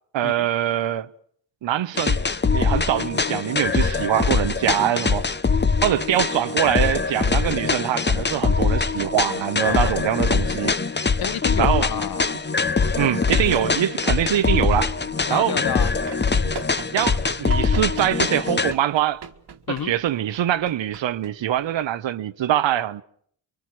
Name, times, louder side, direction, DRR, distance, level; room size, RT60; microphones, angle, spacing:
voice 1, 0.1-1.1 1.6-2.2 2.5-5.3 5.8-10.7 11.6-11.9 13.0-14.9 15.3-15.6 16.9-19.2 19.7-23.0, right 11 dB, 75° right, 1.1 m, -23 dB
sound 1, 2.0-18.7, left 4 dB, 25° left, 1.0 m, -23 dB
voice 2, 11.2-12.2 15.3-16.0 19.7-19.9, left 9 dB, 55° left, 0.9 m, -29 dB
Run, 15.6-21.9, right 7 dB, 60° right, 1.8 m, -40 dB
26.0 x 23.5 x 6.2 m
cardioid pair, 55°, 45 cm